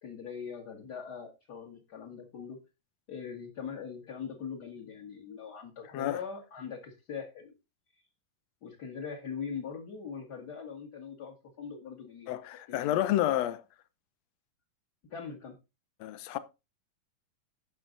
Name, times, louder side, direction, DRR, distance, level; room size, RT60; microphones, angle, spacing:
voice 1, 0.0-2.6 3.1-7.5 8.6-12.3 12.7-13.1 15.1-15.6, left 6 dB, 35° left, 1.9 m, -41 dB
voice 2, 12.3-13.6 16.0-16.4, left 12 dB, 75° left, 1.6 m, -29 dB
12.0 x 7.3 x 3.9 m
omnidirectional pair, 4.0 m